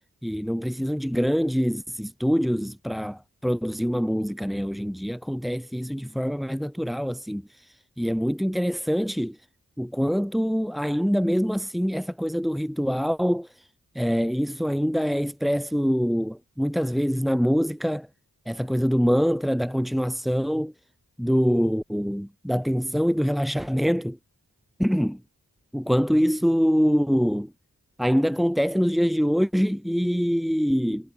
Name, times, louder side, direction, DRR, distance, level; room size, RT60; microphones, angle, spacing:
voice 1, 0.2-9.4 9.8-13.7 13.9-18.1 18.5-20.7 21.2-24.2 24.8-25.2 25.7-27.5 28.0-31.1, equal, ahead, 5.6 m, -24 dB
cardioid pair, 45°, 37 cm